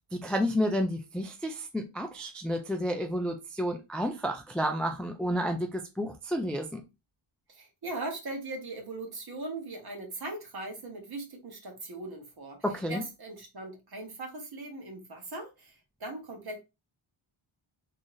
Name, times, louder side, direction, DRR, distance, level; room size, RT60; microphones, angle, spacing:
voice 1, 0.1-6.8 12.6-13.0, equal, ahead, 0.3 m, -31 dB
voice 2, 7.5-16.6, right 2 dB, 50° right, 1.3 m, -40 dB
3.8 x 3.0 x 2.6 m
wide cardioid pair, 175°, 50 cm